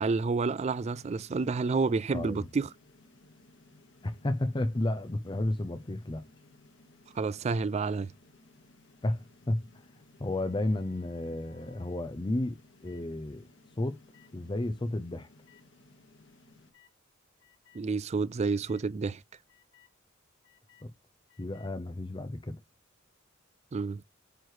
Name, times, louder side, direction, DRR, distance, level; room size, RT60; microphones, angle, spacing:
voice 1, 0.0-2.7 7.2-8.1 17.7-19.2 23.7-24.0, right 4 dB, 30° right, 0.3 m, -29 dB
sound 1, 0.7-16.7, left 2 dB, 60° left, 1.7 m, -59 dB
voice 2, 4.0-6.2 9.0-9.8 10.2-13.4 13.8-14.0 14.3-15.3 20.8-20.9 21.4-22.6, left 1 dB, 25° left, 0.5 m, -32 dB
sound 2, 10.2-12.1 12.8-13.1 14.1-14.3 15.4-15.6 16.7-16.9 17.4-17.9 18.4-18.9 19.5-19.9 20.4-20.9 21.3-21.7, left 6 dB, 85° left, 4.2 m, -63 dB
9.1 x 6.1 x 3.2 m
head